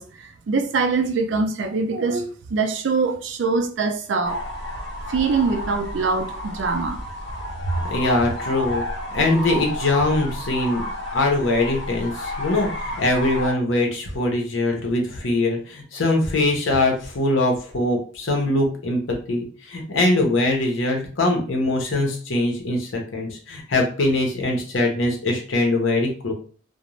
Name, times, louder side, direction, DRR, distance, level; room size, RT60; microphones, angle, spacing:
voice 1, 0.0-4.4 5.1-7.0, right 4 dB, 70° right, 0.4 m, -23 dB
sound 1, 4.2-13.5, left 1 dB, 55° left, 1.2 m, -31 dB
voice 2, 7.8-8.8 9.1-10.8 11.1-26.3, left 2 dB, 80° left, 0.8 m, -22 dB
2.4 x 2.1 x 3.0 m
head